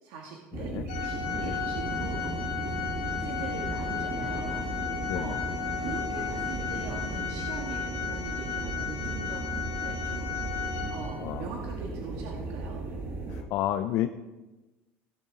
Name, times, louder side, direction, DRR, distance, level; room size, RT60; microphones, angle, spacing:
voice 1, 0.0-2.3 2.6-4.6 5.0-5.4 5.8-9.4 9.8-10.6 10.9-12.8, right 5 dB, 75° right, 0 dB, 1.7 m, -42 dB
voice 2, 0.5-0.8 1.3-1.6 2.0-2.1 5.1-5.4 11.2-11.5 13.3-14.1, left 13 dB, 55° left, 7 dB, 0.5 m, -31 dB
sound 1, 0.5-13.4, right 3 dB, 40° right, 1.3 m, -36 dB
Organ, 0.9-11.5, left 7 dB, 80° left, 1.5 m, -35 dB
sound 2, 1.2-7.6, left 1 dB, 10° right, 1.9 m, -44 dB
16.0 x 7.1 x 4.1 m, 1.1 s
cardioid pair, 160°, 6 cm